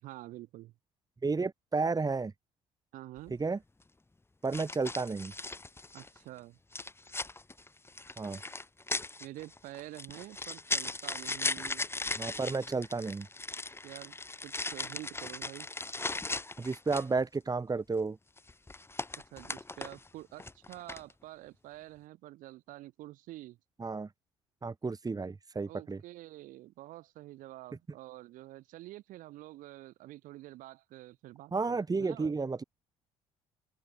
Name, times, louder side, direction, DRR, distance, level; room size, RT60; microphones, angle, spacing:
voice 1, 0.0-0.7 2.9-3.3 5.9-6.6 9.2-11.9 13.8-14.2 14.4-15.7 19.3-23.6 25.7-32.4, right 16 dB, 60° right, 6.5 m, -48 dB
voice 2, 1.2-2.3 3.3-3.6 4.4-5.3 8.2-8.4 12.1-13.3 16.6-18.2 23.8-24.1 24.6-26.0 31.5-32.6, right 4 dB, 25° right, 6.6 m, -32 dB
sound 1, 3.2-3.4 4.5-6.2 6.7-17.2 18.4-20.1 20.4-21.1, left 2 dB, 15° left, 3.3 m, -38 dB
open air
figure-of-eight pair, 50°, 16 cm